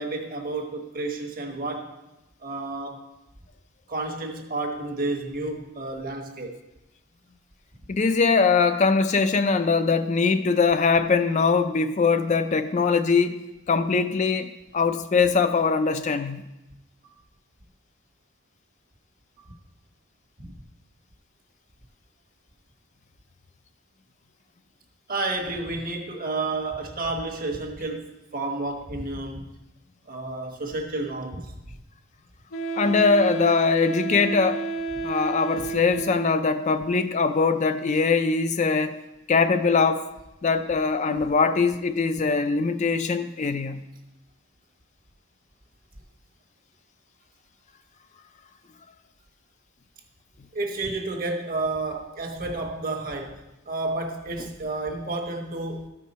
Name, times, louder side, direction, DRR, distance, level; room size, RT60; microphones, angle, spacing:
voice 1, 0.0-1.9 2.4-3.1 3.9-6.6 19.4-19.5 20.4-20.6 25.1-29.5 30.1-31.7 35.6-35.7 41.1-41.3 50.5-55.9, right 2 dB, 45° right, 4 dB, 1.2 m, -31 dB
voice 2, 7.9-13.4 13.7-16.4 32.8-34.6 35.0-39.0 39.3-40.0 40.4-43.8, left 4 dB, 35° left, 9 dB, 0.4 m, -22 dB
Wind instrument woodwind instrument, 32.5-36.6, right 4 dB, 85° left, 1.0 m, -31 dB
13.5 x 5.6 x 4.2 m, 0.97 s
head